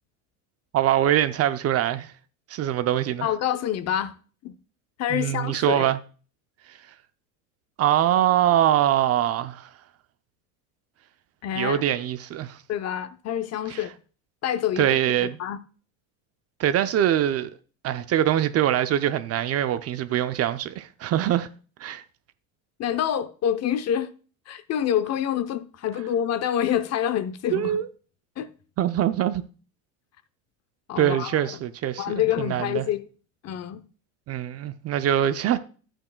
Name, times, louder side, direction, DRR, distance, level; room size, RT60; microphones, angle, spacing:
voice 1, 0.7-2.1 2.5-3.3 5.1-6.0 6.7-6.8 7.8-9.7 11.5-12.6 13.7-13.8 14.8-15.4 16.6-17.5 17.8-21.5 21.8-22.0 27.5-27.9 28.8-29.4 31.0-32.8 34.3-35.6, right 11 dB, 35° right, 0.5 m, -23 dB
voice 2, 3.2-4.1 4.4-4.5 5.0-5.9 11.4-11.8 12.7-13.9 14.4-14.9 15.2-15.6 22.8-24.1 24.5-27.8 28.4-28.5 30.9-31.3 32.0-33.1 33.4-33.8, left 10 dB, 40° left, 0.7 m, -27 dB
12.0 x 8.9 x 2.2 m
supercardioid pair, 105°, 42 cm